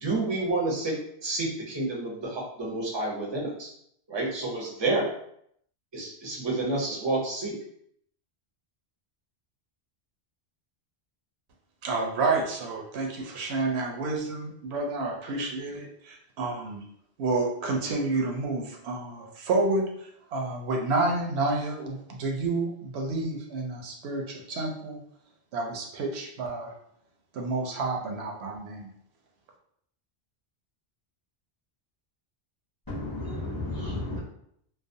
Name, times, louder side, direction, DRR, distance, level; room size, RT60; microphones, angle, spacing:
voice 1, 0.0-3.7 4.1-5.1 5.9-7.5, right 2 dB, 35° right, -2 dB, 0.5 m, -29 dB
voice 2, 11.8-16.8 17.2-25.0 25.5-26.7 27.3-28.9, right 3 dB, 85° right, 1 dB, 0.8 m, -29 dB
voice 3, 32.9-34.2, left 2 dB, 30° left, -6 dB, 0.5 m, -33 dB
2.4 x 2.0 x 2.6 m, 0.70 s
omnidirectional pair, 1.1 m